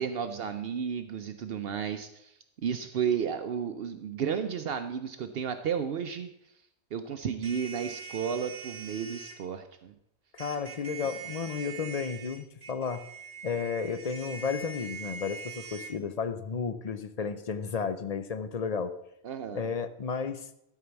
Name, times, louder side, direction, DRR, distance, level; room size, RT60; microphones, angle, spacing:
voice 1, 0.0-2.3 2.6-6.3 6.9-9.9 19.2-19.7, right 7 dB, 65° right, 8 dB, 0.8 m, -33 dB
sound 1, 7.4-9.4 10.4-15.9, right 5 dB, 45° right, 1.8 m, -43 dB
voice 2, 10.3-13.0 13.4-18.9 19.5-20.5, left 5 dB, 45° left, 10 dB, 0.6 m, -33 dB
12.5 x 4.7 x 6.9 m, 0.80 s
omnidirectional pair, 1.1 m